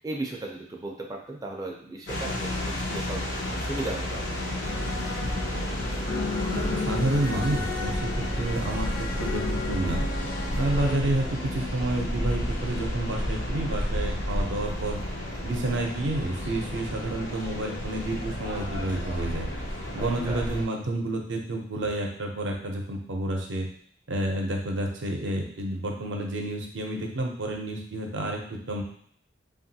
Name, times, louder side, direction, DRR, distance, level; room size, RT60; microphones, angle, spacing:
voice 1, 0.0-4.4 8.3-8.4 10.6-10.7 20.0-20.5, right 2 dB, 20° right, -1 dB, 0.3 m, -36 dB
sound 1, 2.1-20.6, left 1 dB, 90° left, 0.7 m, -32 dB
sound 2, 4.6-11.0, left 2 dB, 50° left, 0.5 m, -32 dB
voice 2, 6.4-10.1 10.6-15.0 15.4-19.5 19.9-23.7 24.1-28.8, right 1 dB, 85° right, 1 dB, 0.6 m, -30 dB
2.8 x 2.3 x 2.7 m, 0.62 s
head